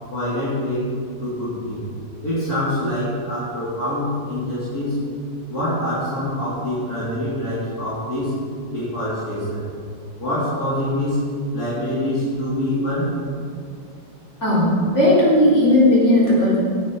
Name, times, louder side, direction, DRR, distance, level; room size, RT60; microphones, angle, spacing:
voice 1, 0.1-0.9 1.2-1.8 2.2-5.0 5.5-8.4 8.7-9.6 10.2-11.3 11.5-13.2, left 1 dB, 55° left, -10 dB, 3.8 m, -25 dB
voice 2, 14.4-16.6, left 1 dB, 40° left, -7 dB, 4.6 m, -16 dB
18.0 x 9.6 x 4.7 m, 2.3 s
omnidirectional pair, 1.9 m